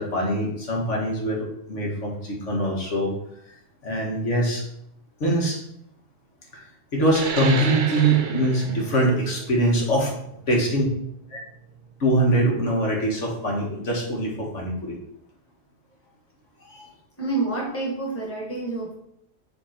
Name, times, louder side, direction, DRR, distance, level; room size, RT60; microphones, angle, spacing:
voice 1, 0.0-3.1 3.8-4.7 5.2-5.6 6.5-6.6 6.9-10.1 10.5-10.9 11.3-11.4 12.0-15.0 16.7-16.9, right 1 dB, 90° left, -2 dB, 1.8 m, -23 dB
sound 1, 7.1-12.2, right 5 dB, 85° right, 1.0 m, -33 dB
voice 2, 17.2-19.0, right 3 dB, 10° left, -2 dB, 1.4 m, -28 dB
7.5 x 3.0 x 4.4 m, 0.79 s
omnidirectional pair, 1.2 m